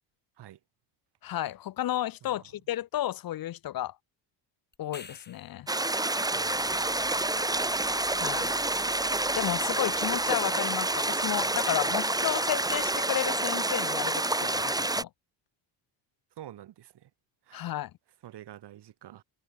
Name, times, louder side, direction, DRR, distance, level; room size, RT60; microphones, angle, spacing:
voice 1, 1.2-3.9 4.8-5.7 8.1-8.5 9.4-15.1 17.5-17.9, left 13 dB, 55° left, 0.9 m, -32 dB
sound 1, 4.7-5.7 10.4-10.5, left 4 dB, 25° left, 7.2 m, -48 dB
sound 2, 5.7-15.0, right 2 dB, 10° right, 1.7 m, -28 dB
voice 2, 6.3-7.2 7.7-7.8 16.4-17.1 17.5-17.7 18.2-19.2, right 12 dB, 70° right, 7.3 m, -48 dB
cardioid pair, 125°, 42 cm